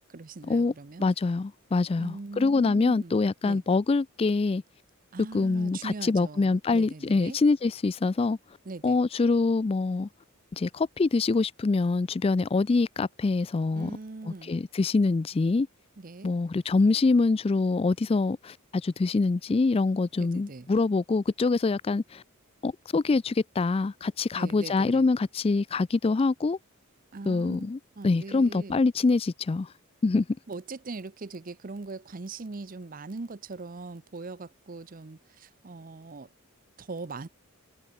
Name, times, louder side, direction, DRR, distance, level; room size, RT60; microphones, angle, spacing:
voice 1, 0.0-1.1 2.0-3.2 3.4-3.6 5.1-7.4 8.7-9.0 13.7-14.5 16.0-16.3 20.2-20.7 24.4-25.0 27.1-27.7 28.0-28.8 30.5-36.3 36.8-37.3, right 3 dB, 40° right, 0.7 m, -41 dB
voice 2, 1.0-4.6 5.3-8.4 8.8-10.1 10.5-13.9 14.4-15.7 16.2-22.2 22.6-26.6 27.3-27.8 28.0-29.7 30.0-30.3, left 3 dB, 25° left, 0.3 m, -25 dB
head